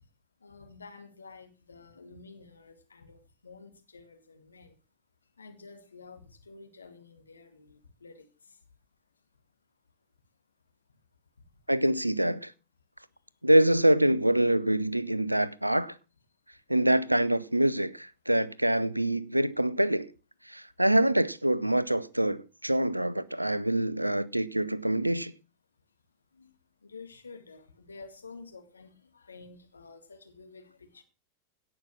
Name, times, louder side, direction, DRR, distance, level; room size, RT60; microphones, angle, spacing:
voice 1, 0.4-4.7 5.4-8.6 26.3-26.5 26.8-31.0, left 4 dB, 75° left, 2.1 m, -50 dB
voice 2, 11.7-12.5 13.4-15.9 16.7-20.1 20.5-25.3, right 1 dB, 85° right, 0.6 m, -25 dB
17.0 x 6.0 x 6.2 m
figure-of-eight pair, 90°, 0 cm